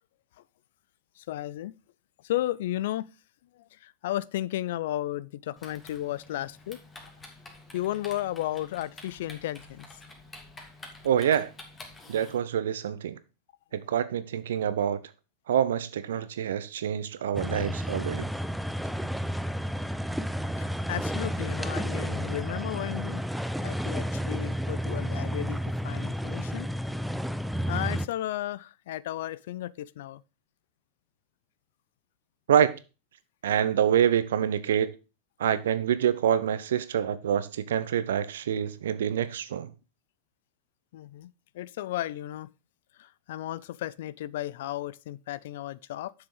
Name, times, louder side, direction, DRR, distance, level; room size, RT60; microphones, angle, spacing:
voice 1, 1.2-1.7 2.2-3.1 3.6-6.8 7.7-9.9 20.6-23.2 23.6-25.6 25.8-26.7 27.7-30.2 40.9-42.5 43.0-46.1, left 14 dB, 65° left, 0.4 m, -34 dB
Typing, 5.6-12.4, left 2 dB, 20° left, 2.3 m, -49 dB
voice 2, 11.0-11.5 12.1-13.2 13.7-15.0 15.5-18.3 32.5-32.7 33.4-34.9 35.4-39.7, right 9 dB, 75° right, 0.7 m, -26 dB
sound 1, 17.4-28.1, equal, ahead, 0.5 m, -31 dB
7.2 x 6.2 x 4.7 m
hypercardioid pair, 100°, 0 cm